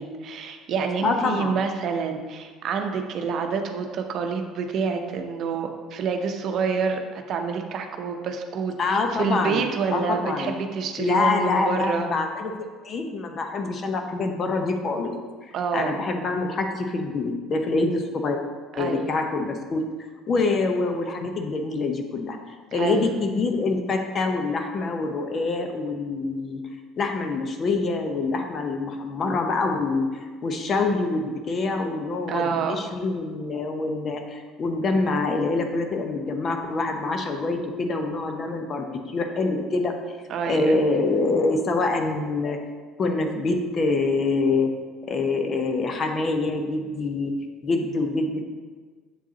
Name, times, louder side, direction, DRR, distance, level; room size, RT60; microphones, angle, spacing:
voice 1, 0.0-12.1 15.5-15.9 18.7-19.2 22.7-23.1 32.3-32.8 40.3-40.8, right 5 dB, 55° right, 5 dB, 0.7 m, -28 dB
voice 2, 1.0-1.6 8.8-9.6 9.9-10.5 11.0-15.1 15.7-18.4 18.8-19.8 20.3-22.4 22.7-26.6 27.0-30.1 30.4-39.9 40.5-42.6 43.0-44.7 45.1-47.3 47.6-48.5, left 3 dB, 40° left, 4 dB, 0.9 m, -25 dB
7.3 x 7.1 x 2.9 m, 1.5 s
hypercardioid pair, 60°, 0 cm